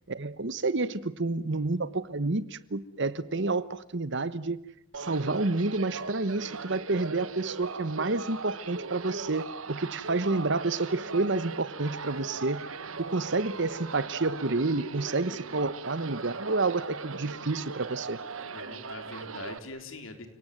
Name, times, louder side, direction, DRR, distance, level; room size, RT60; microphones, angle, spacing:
voice 1, 0.1-4.6 5.0-12.6 13.0-18.2, right 3 dB, 60° right, 1.2 m, -29 dB
sound 1, 4.9-19.6, right 4 dB, 80° right, 1.5 m, -39 dB
voice 2, 18.4-20.3, left 2 dB, 70° left, 4.0 m, -43 dB
30.0 x 18.5 x 9.3 m
head